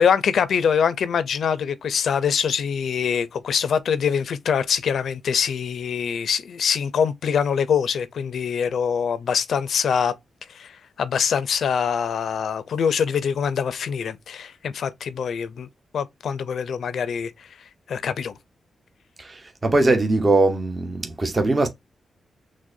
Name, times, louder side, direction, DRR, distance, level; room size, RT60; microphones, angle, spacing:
voice 1, 0.0-10.1 10.5-15.7 15.9-17.3 17.9-18.3, left 7 dB, 75° left, 0.4 m, -24 dB
voice 2, 19.2-21.7, right 2 dB, 35° right, 0.8 m, -21 dB
6.1 x 2.1 x 2.5 m
cardioid pair, 70°, 0 cm